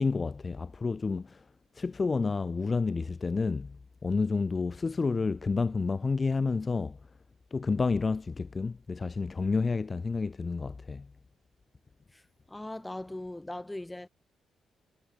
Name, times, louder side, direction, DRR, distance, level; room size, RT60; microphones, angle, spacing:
voice 1, 0.0-1.4 1.7-7.0 7.5-11.1, left 4 dB, 30° left, 1.7 m, -30 dB
voice 2, 12.5-14.1, left 1 dB, 10° left, 2.9 m, -39 dB
cardioid pair, 130°, 0 cm